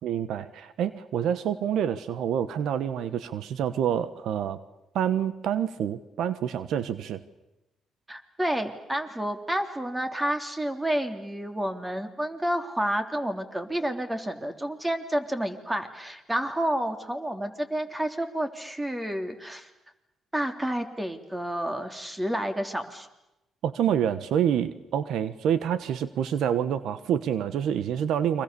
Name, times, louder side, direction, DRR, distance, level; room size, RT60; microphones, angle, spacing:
voice 1, 0.0-4.6 4.9-7.2 23.6-28.4, right 9 dB, 80° right, 13 dB, 1.2 m, -27 dB
voice 2, 8.1-19.7 20.3-23.1, right 1 dB, 10° right, 7 dB, 3.2 m, -30 dB
30.0 x 25.0 x 7.0 m, 0.91 s
cardioid pair, 90°, 0 cm